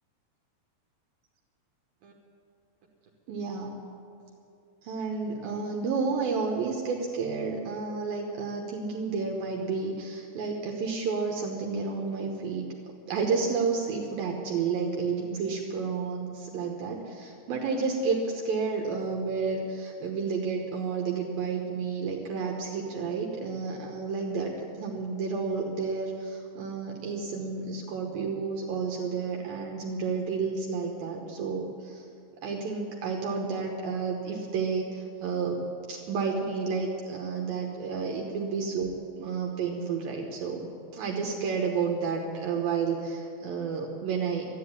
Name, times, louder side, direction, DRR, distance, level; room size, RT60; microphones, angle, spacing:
voice 1, 3.3-3.7 4.8-12.7 13.1-32.1 32.4-35.6 35.9-44.5, right 5 dB, 70° right, 0 dB, 2.5 m, -31 dB
12.5 x 10.5 x 9.7 m, 2.6 s
omnidirectional pair, 5.0 m